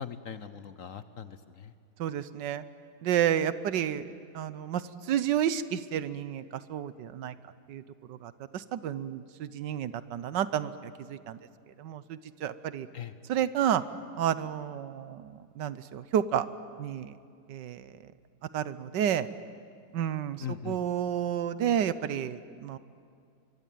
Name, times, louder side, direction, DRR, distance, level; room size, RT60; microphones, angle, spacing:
voice 1, 0.0-1.7 12.9-13.2 20.4-20.8, left 8 dB, 55° left, 12 dB, 1.0 m, -40 dB
voice 2, 2.0-2.6 3.0-4.0 4.3-6.4 6.7-7.3 7.7-7.8 8.1-11.4 11.8-12.9 13.3-13.8 14.2-16.4 16.8-17.2 17.5-17.9 18.5-19.3 19.9-22.8, right 10 dB, 75° right, 15 dB, 1.5 m, -30 dB
24.5 x 23.0 x 9.2 m, 2.3 s
omnidirectional pair, 1.9 m